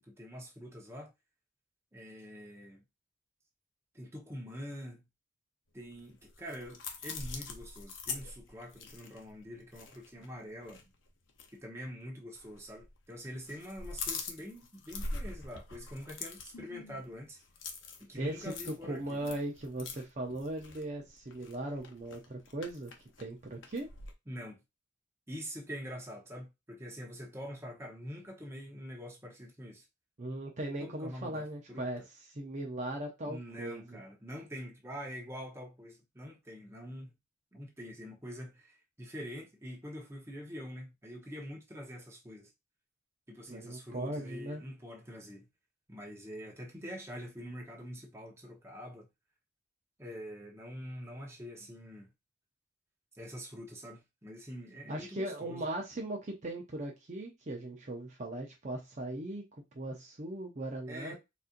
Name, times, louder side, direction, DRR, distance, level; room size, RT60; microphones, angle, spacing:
voice 1, 0.1-1.1 1.9-2.8 3.9-5.1 5.7-10.9 11.5-17.4 18.0-19.2 24.3-24.6 25.3-29.8 30.8-32.1 33.3-37.1 37.5-42.5 43.3-45.5 45.9-49.1 50.0-52.1 53.1-55.7 60.9-61.2, equal, 15° right, 0.9 m, -45 dB
sound 1, 5.9-10.3 10.6-10.8 11.3-11.5 12.3-13.0 13.2-24.1, left 4 dB, 80° left, 0.7 m, -44 dB
voice 2, 18.1-22.9 23.2-23.9 30.2-32.0 32.3-34.0 43.5-44.6 54.9-61.2, right 1 dB, 40° right, 0.6 m, -38 dB
4.2 x 2.6 x 2.5 m
head